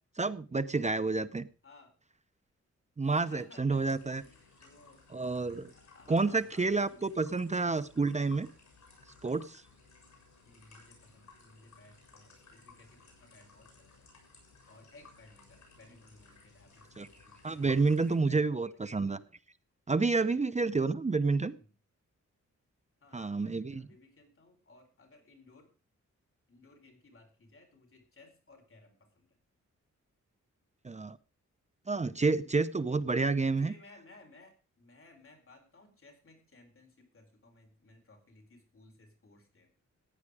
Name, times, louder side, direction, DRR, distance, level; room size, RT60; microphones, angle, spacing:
voice 1, 0.2-1.5 3.0-4.2 5.1-5.7 6.1-8.5 9.2-9.6 17.0-17.1 17.4-19.2 19.9-21.6 23.1-23.9 30.8-31.2 31.9-33.7, right 3 dB, 25° right, 13 dB, 0.6 m, -29 dB
voice 2, 1.6-2.0 3.2-5.0 5.7-7.1 10.4-14.1 14.6-19.1 20.7-20.8 21.5-21.7 23.0-25.7 26.5-29.4 33.3-39.7, left 2 dB, 45° left, 3 dB, 4.1 m, -59 dB
sound 1, 3.7-18.2, left 4 dB, 70° left, 7.2 m, -59 dB
15.0 x 9.6 x 4.9 m, 0.35 s
wide cardioid pair, 135°, 30 cm